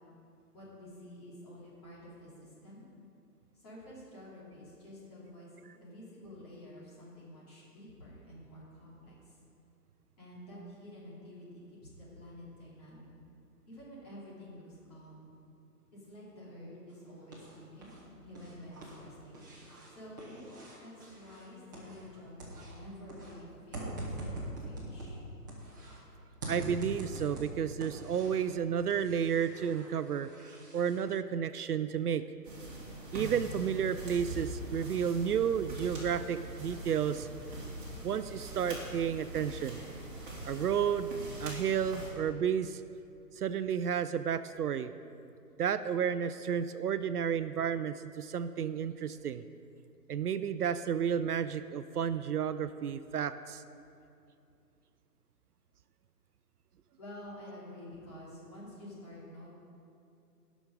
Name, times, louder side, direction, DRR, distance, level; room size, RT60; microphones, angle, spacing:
voice 1, 0.5-2.9 3.5-9.4 10.2-13.1 13.7-15.3 15.9-17.9 18.2-19.4 19.9-24.0 24.6-25.2 57.0-59.5, left 1 dB, 25° left, -7 dB, 2.7 m, -50 dB
sound 1, 16.9-18.0 18.3-22.1 22.4-26.0 26.4-28.5 28.9-31.0, right 1 dB, 10° right, 1.0 m, -44 dB
voice 2, 26.5-32.3 33.1-37.3 38.0-39.8 40.4-41.1 41.4-42.8 43.4-44.9 45.6-49.4 50.1-53.6, right 8 dB, 70° right, 12 dB, 0.5 m, -32 dB
sound 2, 32.4-42.1, right 1 dB, 30° right, 2.8 m, -42 dB
17.5 x 6.2 x 5.1 m, 2.6 s
hypercardioid pair, 165°, 48 cm